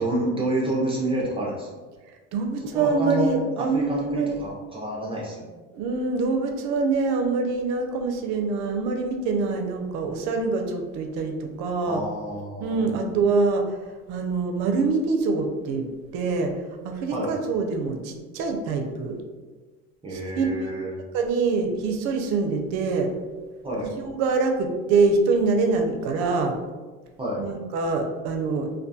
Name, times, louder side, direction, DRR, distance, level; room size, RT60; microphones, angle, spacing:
voice 1, 0.0-1.7 2.7-5.5 11.8-13.0 17.1-17.3 20.0-20.9 23.6-23.9 27.2-27.4, right 1 dB, 20° right, -4 dB, 0.5 m, -28 dB
voice 2, 2.3-4.5 5.7-12.0 12.6-13.8 14.1-15.9 16.1-16.5 16.8-19.2 20.1-20.5 21.1-23.1 24.0-26.5 27.4-28.7, right 4 dB, 70° right, 4 dB, 0.5 m, -25 dB
2.3 x 2.2 x 2.6 m, 1.3 s
supercardioid pair, 95°, 29 cm